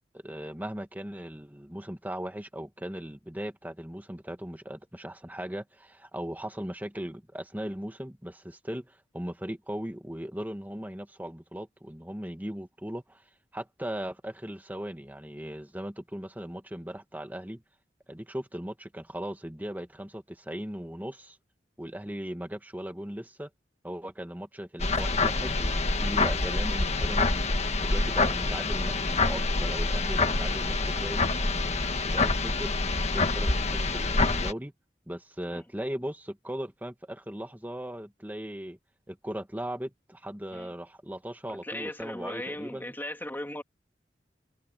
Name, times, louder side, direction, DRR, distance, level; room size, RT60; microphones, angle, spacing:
voice 1, 0.1-13.2 13.5-17.6 18.1-21.4 21.8-23.5 23.8-27.4 27.9-31.2 32.1-32.7 33.1-34.7 35.1-38.8 39.1-42.9, equal, 10° right, 1.8 m, -38 dB
sound 1, 24.8-34.5, left 3 dB, 40° left, 1.6 m, -26 dB
voice 2, 41.5-43.6, left 1 dB, 10° left, 3.1 m, -37 dB
head